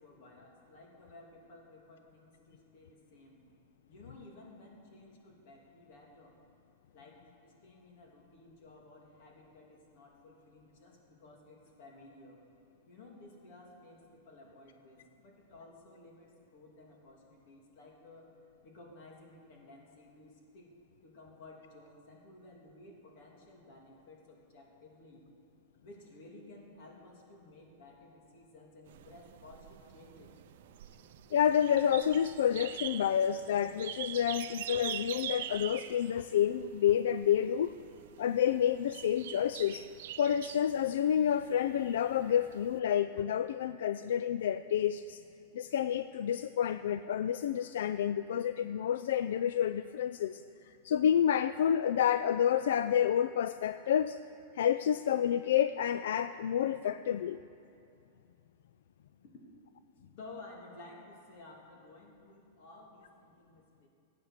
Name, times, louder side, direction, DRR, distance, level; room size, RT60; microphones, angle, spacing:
voice 1, 0.0-3.4 3.8-6.4 6.9-12.4 12.9-18.3 18.6-20.7 21.0-25.2 25.8-30.4 60.2-63.9, left 2 dB, 45° left, -1 dB, 2.8 m, -54 dB
sound 1, 28.9-42.8, right 12 dB, 60° right, 0.5 m, -45 dB
voice 2, 31.3-37.7 38.2-39.9 40.2-45.2 45.5-54.2 54.5-57.4, left 9 dB, 80° left, 12 dB, 0.3 m, -29 dB
16.0 x 8.8 x 6.6 m, 2.5 s
supercardioid pair, 170°, 0 cm